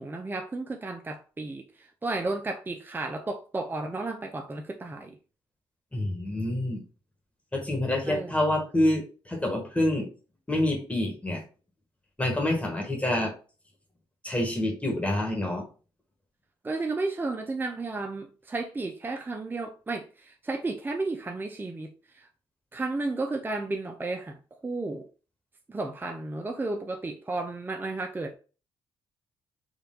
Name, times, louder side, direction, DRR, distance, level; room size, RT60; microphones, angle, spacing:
voice 1, 0.0-5.2 8.0-8.3 16.6-22.3 22.7-25.1 25.7-28.3, right 3 dB, 20° right, 0.6 m, -33 dB
voice 2, 5.9-6.8 7.5-10.1 10.5-11.4 12.2-13.3 14.2-15.6, left 1 dB, 15° left, 1.5 m, -27 dB
4.5 x 2.6 x 3.8 m
supercardioid pair, 70°, 10 cm